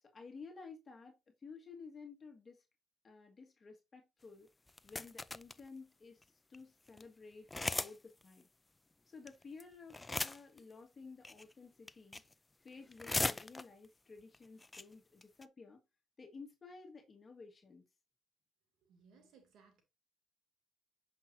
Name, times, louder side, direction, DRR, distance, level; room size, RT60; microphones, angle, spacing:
voice 1, 0.0-2.6 3.0-4.5 4.8-7.5 7.8-8.5 9.1-12.2 12.6-15.8 16.2-17.9, left 4 dB, 35° left, 1.8 m, -54 dB
sound 1, 4.7-5.6 6.2-6.3 6.5-6.6 6.9-7.0 7.5-8.0 8.2-8.3 9.3-9.6 9.9-10.6 11.2-11.5 11.9-12.3 12.7-13.9 14.3-14.4 14.6-14.8 15.2-15.4, left 2 dB, 20° left, 0.5 m, -38 dB
voice 2, 18.9-19.8, right 5 dB, 80° right, 2.5 m, -64 dB
7.6 x 5.9 x 2.7 m
cardioid pair, 90°, 0 cm